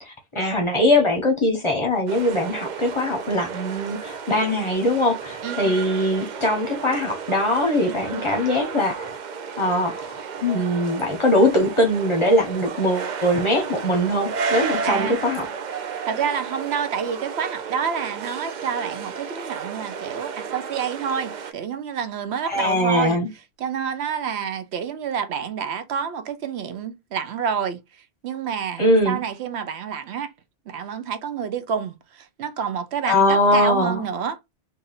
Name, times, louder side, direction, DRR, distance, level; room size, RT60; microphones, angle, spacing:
voice 1, 0.3-9.2 9.6-10.1 10.4-15.5 22.5-23.3 28.8-29.2 33.1-34.0, left 1 dB, 30° left, 0.8 m, -21 dB
sound 1, 2.1-21.5, right 6 dB, 55° right, 0.6 m, -33 dB
voice 2, 14.8-15.2 16.1-23.2 23.6-27.8 28.2-30.3 30.7-34.5, right 7 dB, 75° right, 0.9 m, -28 dB
2.7 x 2.6 x 3.9 m
omnidirectional pair, 1.1 m